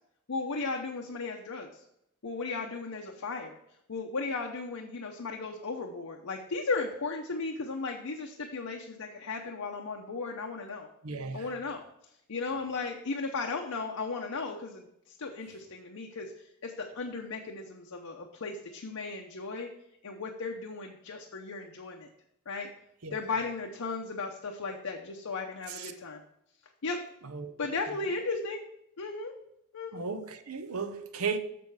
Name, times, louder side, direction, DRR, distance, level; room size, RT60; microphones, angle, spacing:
voice 1, 0.3-1.8 2.2-3.6 3.9-10.9 11.3-11.8 12.3-19.7 20.0-22.1 22.5-22.7 23.1-26.2 26.8-27.0 27.6-28.6 29.0-29.3 29.7-30.1, left 3 dB, 75° left, 0.8 m, -36 dB
voice 2, 11.0-11.5 23.0-23.2 25.7-25.9 27.2-27.5 29.9-31.4, right 5 dB, 85° right, 0.8 m, -35 dB
6.9 x 6.9 x 4.8 m
head